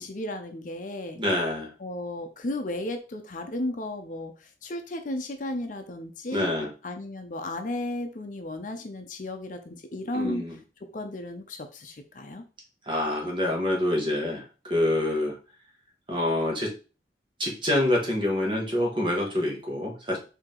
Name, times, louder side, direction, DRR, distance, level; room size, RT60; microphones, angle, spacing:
voice 1, 0.0-1.2 1.8-10.4 10.9-12.4, left 1 dB, 45° left, 6 dB, 0.6 m, -34 dB
voice 2, 1.2-1.7 6.3-6.7 10.1-10.6 12.8-15.4 16.1-16.7 17.4-20.2, left 1 dB, 25° right, 0 dB, 1.3 m, -26 dB
4.7 x 2.8 x 3.7 m, 0.34 s
head